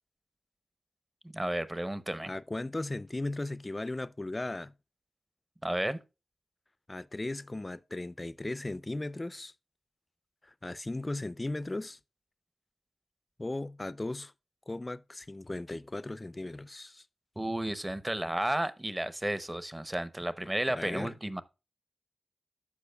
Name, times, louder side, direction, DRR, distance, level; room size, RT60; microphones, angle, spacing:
voice 1, 1.3-2.3 5.6-6.0 17.4-21.4, right 1 dB, 20° right, 0.7 m, -32 dB
voice 2, 2.3-4.7 6.9-9.5 10.4-12.0 13.4-14.3 14.7-17.0 20.7-21.1, left 2 dB, 30° left, 0.4 m, -37 dB
13.5 x 4.8 x 2.3 m
cardioid pair, 50°, 0 cm